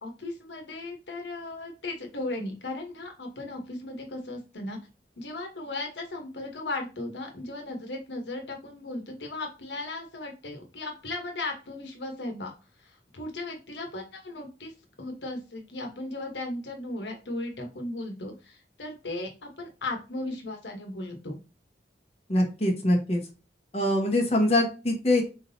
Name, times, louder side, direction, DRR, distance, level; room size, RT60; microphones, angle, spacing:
voice 1, 0.0-4.8 5.2-12.5 12.8-14.7 15.0-21.4, left 2 dB, 85° left, 3 dB, 1.1 m, -36 dB
voice 2, 22.3-23.2 23.7-25.2, left 1 dB, 35° left, -1 dB, 1.3 m, -23 dB
4.4 x 3.7 x 2.7 m, 0.30 s
head